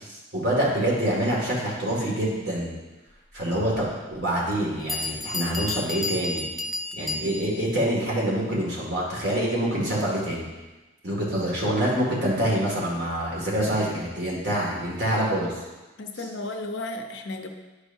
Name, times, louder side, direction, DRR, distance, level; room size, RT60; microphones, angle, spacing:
voice 1, 0.0-2.7 3.3-6.5 7.0-10.5 11.0-15.6, right 1 dB, 60° right, -4 dB, 2.1 m, -26 dB
Bell, 4.5-4.6 4.9-7.7, left 2 dB, ahead, 0.4 m, -31 dB
voice 2, 16.0-17.5, left 2 dB, 70° left, 4 dB, 0.7 m, -33 dB
10.5 x 4.8 x 2.7 m, 1.2 s
head